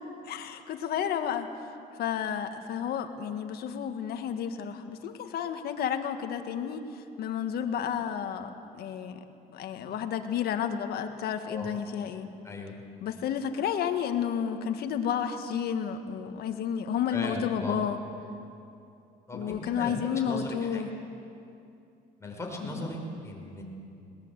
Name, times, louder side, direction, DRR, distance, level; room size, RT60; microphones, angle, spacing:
voice 1, 0.2-1.5 2.0-9.2 9.5-12.3 13.0-18.0 19.3-20.9, left 8 dB, 70° left, 7 dB, 1.7 m, -31 dB
voice 2, 17.1-17.8 19.3-19.9 20.2-20.8 22.2-23.6, left 2 dB, 15° left, 0 dB, 4.8 m, -37 dB
21.0 x 19.0 x 8.2 m, 2.6 s
cardioid pair, 110°, 17 cm